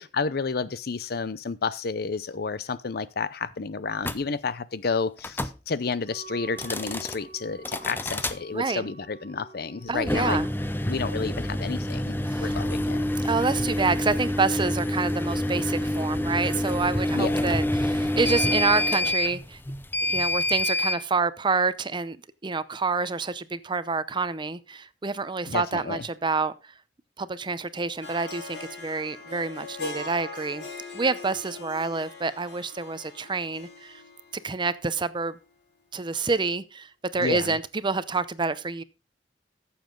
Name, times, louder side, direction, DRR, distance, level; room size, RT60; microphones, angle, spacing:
voice 1, 0.0-10.5 10.8-13.0 17.1-17.5 25.5-26.0 37.2-37.6, left 4 dB, 60° left, 0.6 m, -31 dB
sound 1, 4.0-4.2 5.2-5.6 6.5-7.2 7.6-8.4 10.0-21.0, left 1 dB, 10° left, 0.7 m, -27 dB
Wind instrument woodwind instrument, 6.0-11.9, right 4 dB, 30° left, 3.3 m, -48 dB
voice 2, 8.5-8.9 9.9-10.5 12.3-12.5 13.2-19.6 20.1-22.2 22.4-26.5 27.2-30.7 30.9-34.0 34.4-35.4 35.9-38.8, right 4 dB, 25° right, 0.6 m, -28 dB
Harp, 28.0-35.2, left 3 dB, 85° left, 4.2 m, -41 dB
14.5 x 7.1 x 3.8 m
head